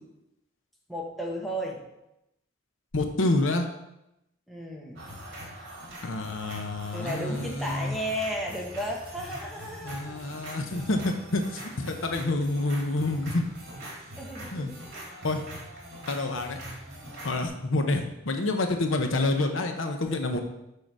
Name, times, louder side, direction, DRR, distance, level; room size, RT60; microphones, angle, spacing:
voice 1, 0.9-1.8 4.5-5.0 6.9-10.2 14.2-14.8, equal, ahead, -2 dB, 1.1 m, -34 dB
voice 2, 2.9-3.7 6.0-8.0 9.8-13.4 14.5-14.7 15.2-15.4 16.1-16.6 17.2-20.4, left 2 dB, 70° left, 5 dB, 0.8 m, -28 dB
sound 1, 5.0-17.5, right 1 dB, 55° right, 2.8 m, -43 dB
6.5 x 5.0 x 6.1 m, 0.88 s
head